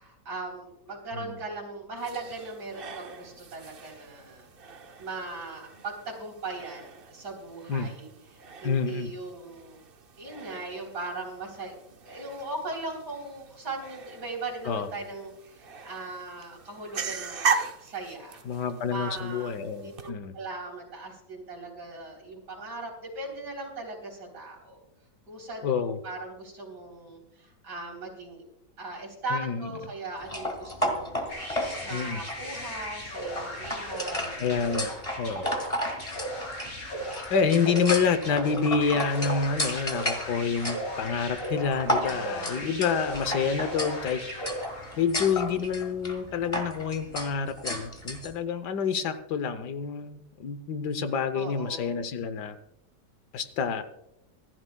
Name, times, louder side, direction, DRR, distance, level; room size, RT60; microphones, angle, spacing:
voice 1, 0.0-4.5 5.0-9.8 10.2-11.8 12.0-17.5 17.8-18.4 18.9-24.8 25.3-28.4 28.8-34.4 34.9-35.1 35.4-35.8 42.0-42.7 51.3-52.0, right 2 dB, 75° right, -2 dB, 4.2 m, -39 dB
sound 1, 2.0-20.1, right 5 dB, 45° right, 0.8 m, -39 dB
voice 2, 8.6-9.1 14.6-14.9 18.5-20.3 25.6-26.0 29.3-29.7 31.9-32.2 34.4-34.9 35.2-35.5 37.3-44.2 45.0-52.6 53.3-53.8, left 6 dB, 75° left, 11 dB, 1.4 m, -28 dB
sound 2, 30.2-48.3, equal, 20° left, 1.8 m, -34 dB
sound 3, 31.3-45.1, equal, 55° left, 5.0 m, -37 dB
26.0 x 11.0 x 2.3 m, 0.85 s
omnidirectional pair, 1.8 m